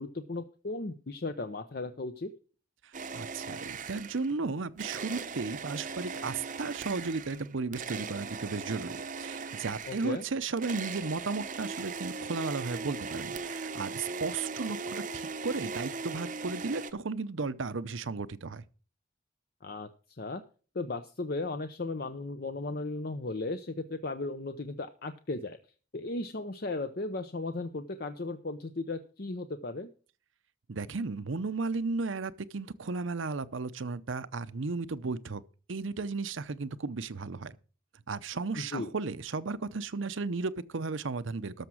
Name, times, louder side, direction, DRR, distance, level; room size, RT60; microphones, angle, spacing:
voice 1, 0.0-2.3 9.8-10.2 19.6-20.4 20.7-25.6 25.9-29.9 38.6-38.9, left 2 dB, 50° left, 0.7 m, -36 dB
sound 1, 2.9-4.4 4.8-16.9, right 4 dB, 40° right, 0.7 m, -39 dB
voice 2, 3.1-18.6 30.7-35.4 35.7-37.5 38.1-41.7, right 4 dB, 70° right, 0.7 m, -34 dB
13.0 x 5.9 x 6.1 m
head